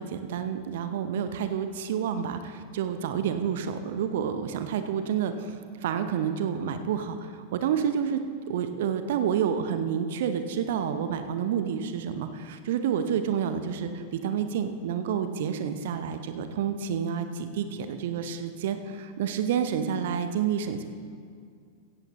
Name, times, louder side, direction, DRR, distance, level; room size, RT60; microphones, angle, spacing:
voice 1, 0.0-8.2 8.5-20.9, right 8 dB, 55° right, 9 dB, 0.8 m, -29 dB
16.5 x 14.5 x 3.0 m, 2.2 s
figure-of-eight pair, 90°, 0 cm